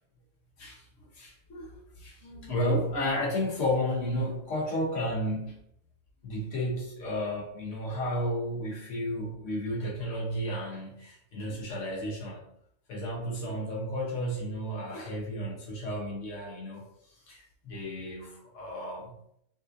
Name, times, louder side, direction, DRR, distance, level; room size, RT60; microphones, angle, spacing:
voice 1, 1.1-5.6 6.2-12.5 12.9-19.2, equal, 85° left, -3 dB, 1.2 m, -33 dB
5.4 x 2.5 x 2.5 m, 0.76 s
omnidirectional pair, 1.2 m